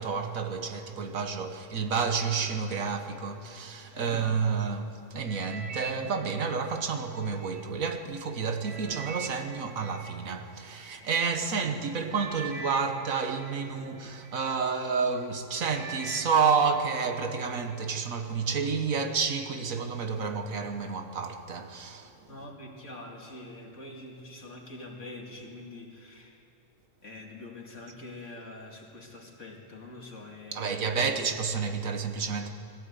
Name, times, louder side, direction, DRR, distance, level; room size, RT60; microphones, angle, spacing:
voice 1, 0.0-22.3 30.5-32.5, right 5 dB, 85° right, 1.7 m, -30 dB
voice 2, 3.9-4.5 11.5-11.6 22.3-26.4 27.0-31.1, left 2 dB, 65° left, 2.7 m, -45 dB
sound 1, 5.3-7.6 8.1-11.0 11.7-11.8 12.1-14.5 15.0-15.3 15.6-17.1 17.4-17.9 18.5-18.6, right 4 dB, 50° right, 1.8 m, -44 dB
21.0 x 16.0 x 8.2 m
omnidirectional pair, 1.4 m